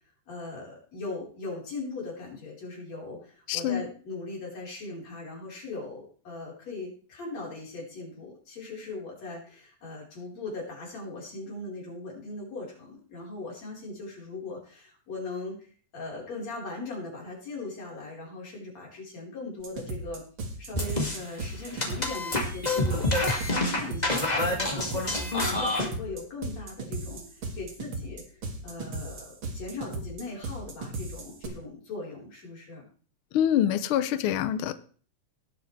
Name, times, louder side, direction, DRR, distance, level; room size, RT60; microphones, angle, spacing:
voice 1, 0.3-20.2 20.6-32.8, left 3 dB, 60° left, -3 dB, 5.4 m, -39 dB
voice 2, 3.5-3.8 33.3-34.7, left 10 dB, 85° left, 12 dB, 1.1 m, -25 dB
sound 1, 19.6-31.5, right 3 dB, 45° right, 2.3 m, -37 dB
sound 2, 20.7-21.2 21.7-25.9, left 2 dB, 15° left, 1.7 m, -27 dB
18.5 x 7.9 x 3.3 m, 0.42 s
omnidirectional pair, 3.4 m